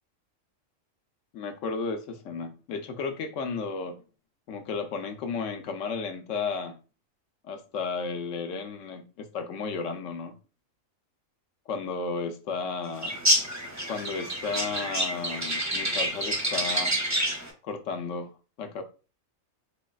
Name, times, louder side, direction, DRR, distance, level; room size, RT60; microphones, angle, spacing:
voice 1, 1.3-4.0 4.5-6.8 7.4-10.3 11.7-13.2 13.9-17.0 17.6-18.3 18.6-18.8, left 4 dB, 70° left, 0.9 m, -33 dB
sound 1, 13.0-17.5, equal, 20° right, 0.5 m, -28 dB
4.1 x 3.0 x 2.3 m
omnidirectional pair, 1.4 m